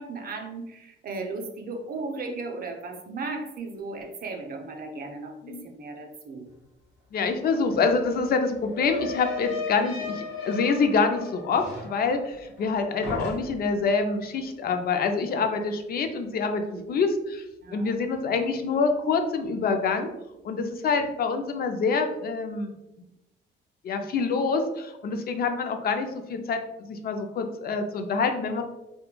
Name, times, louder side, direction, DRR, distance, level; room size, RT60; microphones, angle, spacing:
voice 1, 0.0-6.5 16.6-16.9 17.6-18.1, right 3 dB, 50° right, 3 dB, 0.5 m, -36 dB
sound 1, 7.1-7.2 7.5-12.7 13.0-13.8, left 4 dB, 90° left, 1.0 m, -36 dB
voice 2, 7.1-17.4 17.7-20.1 20.4-22.7 23.8-28.6, left 4 dB, 50° left, 6 dB, 0.4 m, -26 dB
3.0 x 2.2 x 2.3 m, 0.94 s
cardioid pair, 90°, 20 cm